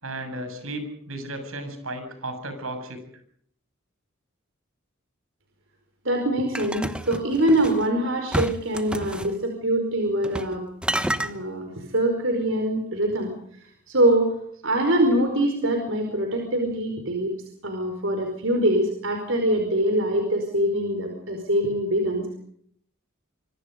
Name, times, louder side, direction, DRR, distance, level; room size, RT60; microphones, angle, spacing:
voice 1, 0.0-3.0 11.2-11.6, right 1 dB, 80° right, 8 dB, 7.4 m, -35 dB
voice 2, 6.0-10.6 11.2-13.3 13.9-14.4 14.6-17.3 17.6-22.4, right 1 dB, 65° right, 4 dB, 4.9 m, -24 dB
sound 1, 6.5-7.8 8.3-9.3 10.2-10.6 10.8-11.3, right 1 dB, 5° right, 1.1 m, -29 dB
26.0 x 24.5 x 5.3 m, 0.63 s
head